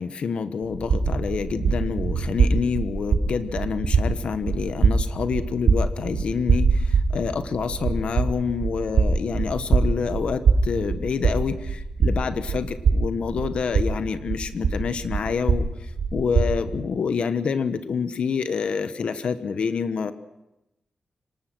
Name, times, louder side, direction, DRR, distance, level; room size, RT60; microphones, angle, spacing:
voice 1, 0.0-15.6 16.1-20.1, left 6 dB, 60° left, 10 dB, 1.2 m, -27 dB
sound 1, 0.6-16.8, right 4 dB, 85° right, 6.4 m, -24 dB
25.0 x 19.5 x 6.2 m, 0.96 s
wide cardioid pair, 170°, 2 cm